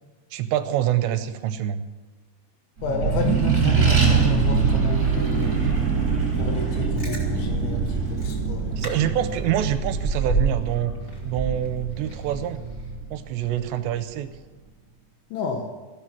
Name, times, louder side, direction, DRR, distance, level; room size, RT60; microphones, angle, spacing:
voice 1, 0.3-1.9 8.8-10.9 11.3-12.6 13.1-14.3, right 11 dB, 80° right, 11 dB, 2.8 m, -26 dB
voice 2, 2.8-5.6 6.3-8.7 15.3-15.7, left 5 dB, 80° left, 3 dB, 3.7 m, -31 dB
Accelerating revving vroom, 2.8-13.7, right 5 dB, 20° right, 3.2 m, -24 dB
Chewing mastication, 6.7-7.2 7.9-8.0 8.2-8.4 8.8-8.9 9.2-10.7 11.1-12.3 12.7-12.8, right 4 dB, 20° left, 2.0 m, -28 dB
15.5 x 12.5 x 6.0 m, 1.4 s
omnidirectional pair, 5.2 m